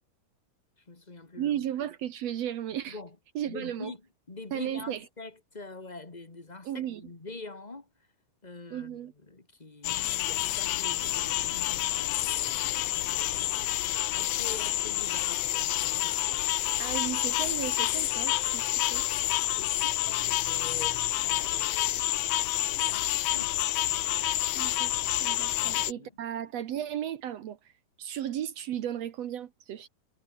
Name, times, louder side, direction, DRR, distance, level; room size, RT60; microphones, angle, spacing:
voice 1, 0.8-1.7 2.9-3.1 3.5-4.0 4.3-7.9 8.4-16.2 19.6-22.1 22.6-23.6 25.6-26.1, left 3 dB, 20° left, 1.0 m, -45 dB
voice 2, 1.4-3.0 3.4-3.9 4.5-5.0 6.6-7.0 8.7-9.1 16.8-19.1 24.6-27.6 28.0-29.9, right 10 dB, 65° right, 1.8 m, -35 dB
sound 1, 9.8-25.9, left 15 dB, 85° left, 1.4 m, -28 dB
omnidirectional pair, 4.1 m